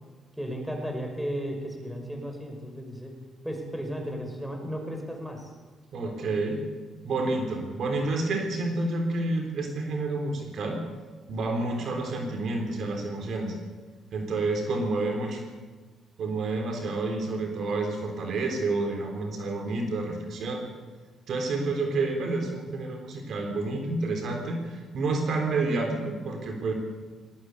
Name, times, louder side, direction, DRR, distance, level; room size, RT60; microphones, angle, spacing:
voice 1, 0.3-3.2 3.4-5.5, equal, 5° right, 3 dB, 5.6 m, -34 dB
voice 2, 5.9-6.6 7.0-10.8 11.3-13.5 14.1-15.4 16.2-20.6 21.3-26.7, right 2 dB, 65° right, 3 dB, 3.8 m, -29 dB
18.5 x 18.0 x 8.4 m, 1.3 s
cardioid pair, 90°, 0 cm